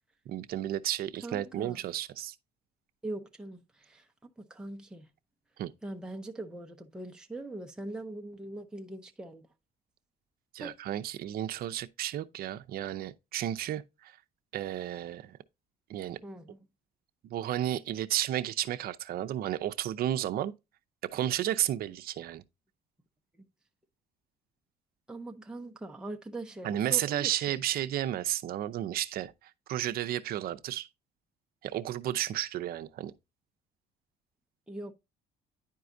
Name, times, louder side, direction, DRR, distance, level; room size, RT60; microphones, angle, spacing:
voice 1, 0.3-2.4 5.6-5.7 10.5-14.2 14.5-15.4 15.9-16.2 17.2-20.5 21.1-22.4 26.6-30.9 31.6-33.1, right 12 dB, 65° right, 0.6 m, -32 dB
voice 2, 1.2-1.8 3.0-4.1 4.4-5.1 5.8-9.5 10.6-10.7 16.2-16.6 23.4-23.5 25.1-27.6 34.7-34.9, right 2 dB, 5° right, 0.7 m, -41 dB
10.0 x 4.7 x 2.6 m
cardioid pair, 110°, 17 cm